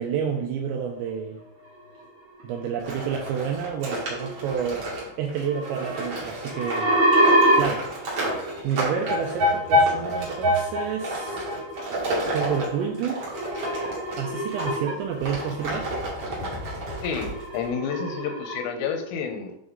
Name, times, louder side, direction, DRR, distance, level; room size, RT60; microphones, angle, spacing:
voice 1, 0.0-1.4 2.4-6.9 7.5-7.9 8.6-11.5 12.3-13.5 14.2-15.9, right 7 dB, 90° right, 2 dB, 2.6 m, -29 dB
sound 1, 0.7-1.0 1.6-2.0 2.4-2.6 3.5-3.6 3.8-4.7 5.0-5.1 5.4-16.5 16.8-19.0, equal, 70° right, 1.4 m, -26 dB
sound 2, 2.8-14.8 15.2-17.7, right 2 dB, 45° right, 2.1 m, -32 dB
voice 2, 17.0-19.6, left 6 dB, 85° left, 5 dB, 3.3 m, -30 dB
8.6 x 4.0 x 3.9 m, 0.77 s
omnidirectional pair, 5.7 m